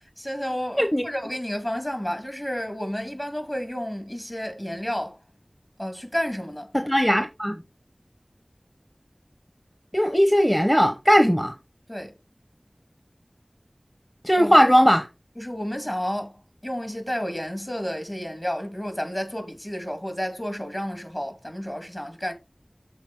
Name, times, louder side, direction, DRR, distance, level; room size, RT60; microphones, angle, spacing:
voice 1, 0.2-5.2 5.8-6.7 11.9-12.1 14.4-14.7 15.4-16.3 16.6-22.3, equal, 30° left, 2.1 m, -31 dB
voice 2, 6.7-7.6 9.9-11.5 14.2-15.0, equal, 5° left, 0.9 m, -18 dB
7.2 x 4.4 x 3.9 m
wide cardioid pair, 40°, 0 cm